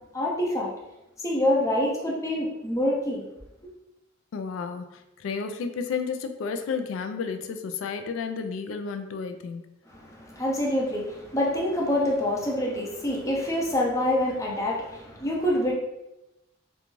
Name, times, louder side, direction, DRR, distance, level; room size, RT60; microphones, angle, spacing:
voice 1, 0.1-0.7 1.2-3.2 9.9-15.7, left 1 dB, 15° left, -3 dB, 0.5 m, -26 dB
voice 2, 4.3-9.7, left 5 dB, 85° left, 8 dB, 0.3 m, -32 dB
2.5 x 2.3 x 3.0 m, 0.94 s
head